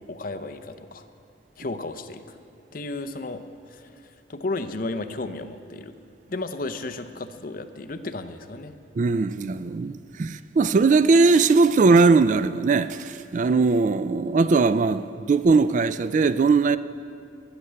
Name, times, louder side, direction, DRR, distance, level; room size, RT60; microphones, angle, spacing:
voice 1, 0.1-1.1 1.6-2.4 2.7-5.9 6.3-8.7, left 2 dB, 45° left, 0.7 m, -34 dB
voice 2, 9.0-16.8, right 4 dB, 40° right, 0.3 m, -20 dB
15.0 x 9.9 x 6.9 m
head